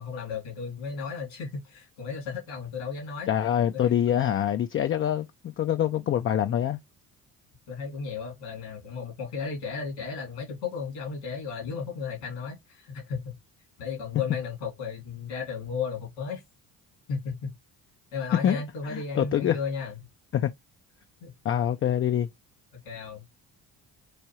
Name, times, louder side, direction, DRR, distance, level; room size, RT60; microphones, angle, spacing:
voice 1, 0.0-3.3 3.7-4.3 7.7-13.4 13.8-16.4 17.1-17.5 18.1-20.0 21.2-21.3 22.8-23.3, left 5 dB, 80° left, 2.8 m, -34 dB
voice 2, 3.3-6.8 18.3-18.6 18.9-19.6 20.3-20.5 21.4-22.3, left 10 dB, 30° left, 0.4 m, -25 dB
4.8 x 2.6 x 2.9 m
hypercardioid pair, 60°, 44 cm